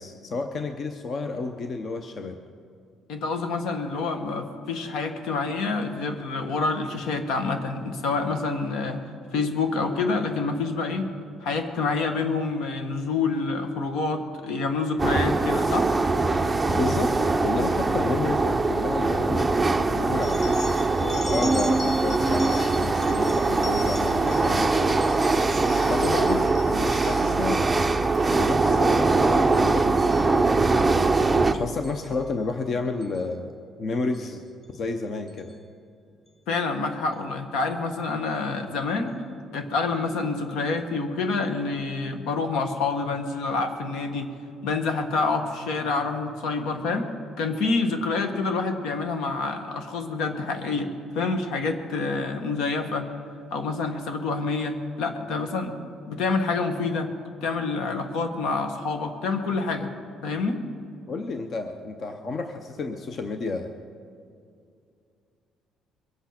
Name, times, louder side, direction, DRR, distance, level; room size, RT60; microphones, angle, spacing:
voice 1, 0.0-2.4 16.7-17.2 17.4-19.5 19.9-20.7 21.0-24.7 25.9-27.6 28.3-29.9 31.5-33.5 33.8-34.4 34.7-35.5 61.1-63.7, left 3 dB, 35° left, 7 dB, 0.7 m, -31 dB
voice 2, 3.1-9.0 9.3-11.1 11.4-15.9 36.5-39.1 39.5-44.3 44.6-47.1 47.4-53.1 53.5-55.8 56.1-57.1 57.4-59.9 60.2-60.6, left 4 dB, 75° left, 7 dB, 1.5 m, -27 dB
sound 1, 15.0-31.6, right 3 dB, 10° right, 0.5 m, -22 dB
sound 2, 20.2-27.5 28.0-28.4 28.7-29.1 29.5-30.9 31.8-32.1 33.0-33.2 34.1-34.2 34.6-34.7 35.3-35.5, left 2 dB, 15° left, 1.1 m, -40 dB
22.5 x 8.2 x 5.9 m, 2.4 s
cardioid pair, 170°, 0 cm